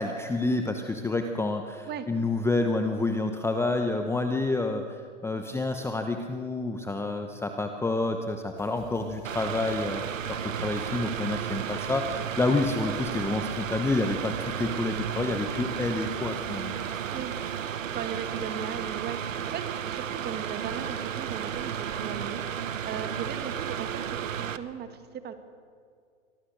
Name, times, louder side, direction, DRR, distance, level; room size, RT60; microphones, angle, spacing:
voice 1, 0.0-10.0 10.3-16.8, left 2 dB, 5° left, 6 dB, 0.9 m, -29 dB
sound 1, 8.5-17.6, left 4 dB, 55° left, 4.7 m, -50 dB
Mechanical fan, 9.2-24.6, right 8 dB, 90° right, 1.2 m, -33 dB
voice 2, 17.9-25.3, right 7 dB, 25° right, 9 dB, 2.0 m, -38 dB
24.0 x 18.0 x 6.6 m, 2.2 s
hypercardioid pair, 120°, 38 cm